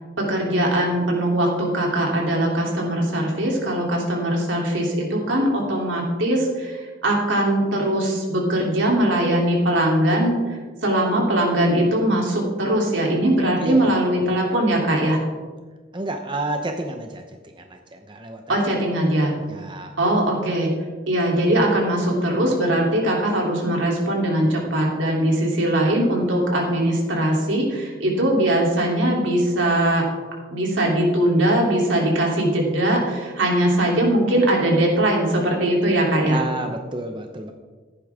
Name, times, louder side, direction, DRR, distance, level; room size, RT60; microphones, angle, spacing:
voice 1, 0.3-15.2 18.5-19.3 20.0-20.7 21.1-30.0 30.5-36.4, right 1 dB, 80° right, -1 dB, 3.4 m, -21 dB
voice 2, 13.6-14.4 15.9-18.9 19.5-20.0 36.3-37.5, right 2 dB, 25° right, 4 dB, 0.8 m, -31 dB
15.0 x 11.0 x 3.7 m, 1.3 s
head